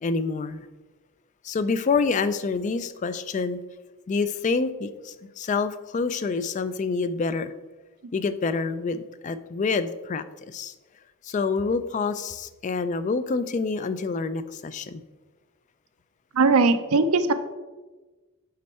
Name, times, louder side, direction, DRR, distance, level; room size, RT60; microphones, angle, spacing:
voice 1, 0.0-0.7 1.4-3.6 4.1-7.5 8.1-10.7 11.2-15.0, left 4 dB, 35° left, 13 dB, 0.3 m, -27 dB
voice 2, 16.3-17.3, right 3 dB, 80° right, 10 dB, 0.6 m, -19 dB
7.6 x 5.4 x 4.2 m, 1.2 s
head